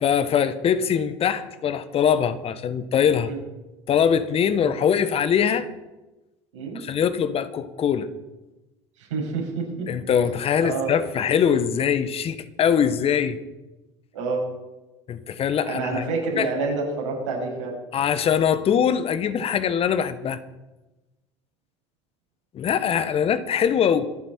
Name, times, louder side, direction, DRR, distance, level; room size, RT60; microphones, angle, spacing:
voice 1, 0.0-3.3 3.9-5.7 6.7-8.1 9.9-13.4 15.1-16.0 16.4-16.5 17.9-20.4 22.5-24.1, left 8 dB, 40° left, 13 dB, 1.3 m, -22 dB
voice 2, 9.0-9.9 10.6-11.0 14.1-14.4 15.7-17.8, right 4 dB, 80° right, -4 dB, 6.7 m, -28 dB
26.5 x 9.1 x 4.5 m, 1.1 s
hypercardioid pair, 70°, 15 cm